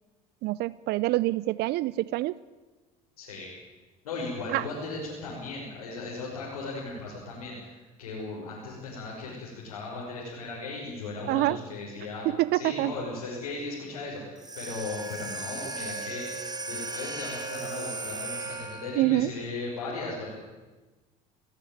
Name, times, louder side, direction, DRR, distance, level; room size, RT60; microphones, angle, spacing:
voice 1, 0.4-2.4 4.5-4.6 11.3-11.6 12.4-12.9 19.0-19.3, right 18 dB, 65° right, 20 dB, 0.6 m, -26 dB
voice 2, 3.2-3.5 4.0-12.3 12.5-20.3, left 3 dB, 90° left, -4 dB, 5.8 m, -37 dB
sound 1, 14.4-19.1, right 3 dB, 20° right, 4.1 m, -36 dB
19.0 x 18.5 x 9.1 m, 1.2 s
hypercardioid pair, 75°, 18 cm